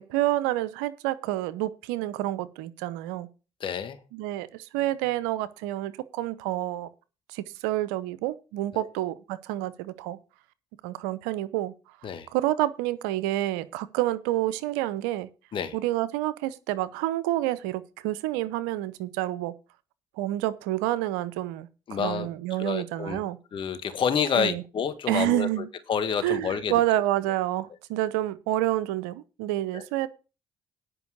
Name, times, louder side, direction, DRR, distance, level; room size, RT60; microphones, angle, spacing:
voice 1, 0.0-3.3 4.1-6.9 7.3-10.2 10.8-11.7 12.3-15.3 15.7-19.5 20.2-23.4 24.4-24.6 25.1-25.7 26.2-30.1, right 15 dB, 80° right, 0.7 m, -28 dB
voice 2, 3.6-4.0 8.7-8.9 12.0-12.3 15.5-15.8 21.9-22.3 22.6-23.2 23.5-26.7 29.7-29.9, left 7 dB, 50° left, 1.8 m, -29 dB
10.0 x 5.3 x 8.0 m
hypercardioid pair, 55°, 11 cm